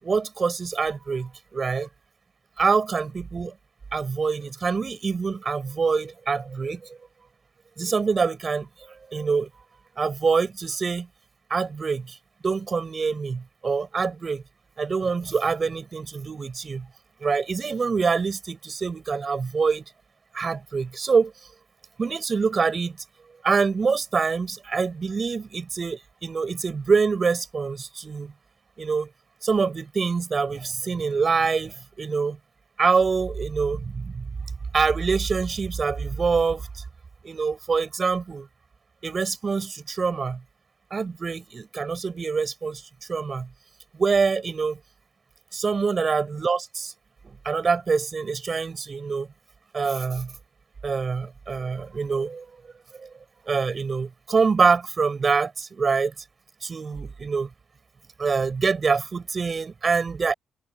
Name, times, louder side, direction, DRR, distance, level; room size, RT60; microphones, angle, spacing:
voice 1, 0.0-1.9 2.6-3.5 3.9-7.0 7.8-9.6 10.0-11.1 11.5-12.2 12.4-14.4 14.8-16.9 17.2-19.9 20.3-21.3 22.0-23.0 23.4-28.3 28.8-29.1 29.4-32.4 32.8-34.3 34.7-36.8 37.2-38.5 39.0-40.4 40.9-42.8 43.1-43.5 43.9-44.8 45.5-46.9 47.2-49.3 49.7-50.3 50.8-52.5 53.0-53.1 53.5-56.1 56.6-57.5 58.2-60.3, right 5 dB, 35° right, 6.4 m, -25 dB
cardioid pair, 90°, 0 cm